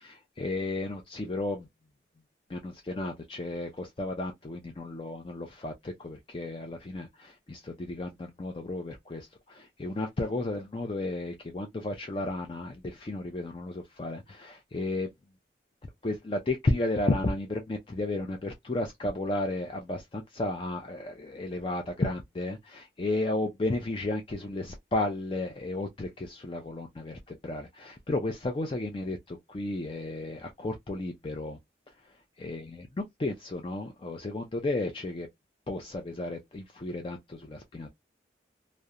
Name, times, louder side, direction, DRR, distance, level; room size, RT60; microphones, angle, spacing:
voice 1, 0.0-1.7 2.5-15.1 16.0-31.6 32.4-32.7 33.2-35.3 35.7-37.9, left 2 dB, 30° left, 0.4 m, -33 dB
2.4 x 2.1 x 2.7 m
head